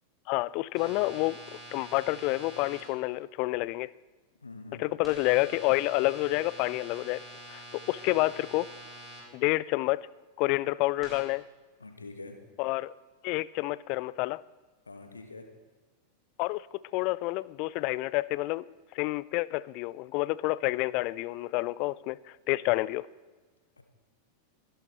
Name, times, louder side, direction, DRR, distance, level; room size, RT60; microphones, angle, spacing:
voice 1, 0.3-1.4 1.7-3.9 4.8-7.2 7.5-8.7 9.3-10.1 10.4-11.4 12.6-12.9 13.2-14.4 16.4-16.7 16.9-18.6 18.9-22.2 22.5-23.1, left 20 dB, 45° left, 21 dB, 0.3 m, -29 dB
sound 1, 0.7-2.8 5.0-9.2 11.0-11.2, right 1 dB, 15° right, 5.5 m, -46 dB
voice 2, 4.4-4.8 11.8-12.4 14.9-15.5, left 3 dB, 80° left, 5 dB, 1.5 m, -45 dB
23.5 x 11.0 x 3.2 m, 1.3 s
figure-of-eight pair, 90°, 0 cm